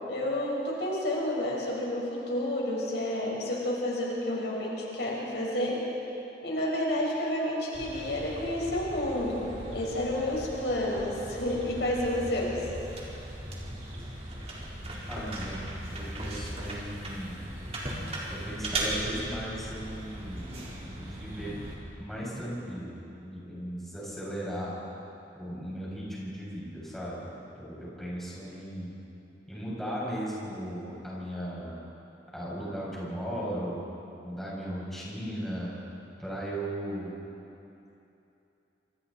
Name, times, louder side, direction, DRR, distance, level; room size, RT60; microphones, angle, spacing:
voice 1, 0.1-5.8 6.4-12.6, left 1 dB, 70° left, -3 dB, 5.5 m, -30 dB
sound 1, 7.7-21.8, right 1 dB, 35° right, 4.4 m, -38 dB
voice 2, 15.1-15.6 15.9-17.5 18.3-21.6 22.0-24.8 25.3-27.3 27.5-29.0 29.5-31.8 32.3-33.8 34.2-35.7 36.2-37.1, equal, ahead, -7 dB, 6.9 m, -37 dB
27.0 x 27.0 x 4.4 m, 2.9 s
head